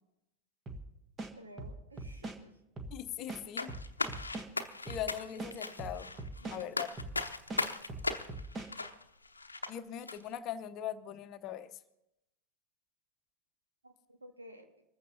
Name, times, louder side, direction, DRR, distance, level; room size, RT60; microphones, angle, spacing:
sound 1, 0.7-0.8 1.2-2.4 2.8-2.9 3.3-4.5 4.9-5.0 5.4-6.6 7.0-7.2 7.5-8.7, right 2 dB, 20° right, 1.6 m, -41 dB
voice 1, 1.4-2.5 4.7-4.8 6.4-6.7 13.8-14.7, right 1 dB, 75° right, 3 dB, 2.1 m, -54 dB
voice 2, 2.9-3.7 4.8-6.1 6.5-6.9 9.7-11.7, left 10 dB, 35° left, 10 dB, 0.9 m, -40 dB
sound 2, 3.6-9.7 10.1-10.2, left 3 dB, 80° left, 0.8 m, -37 dB
25.5 x 14.5 x 2.8 m, 0.88 s
figure-of-eight pair, 90°, 0 cm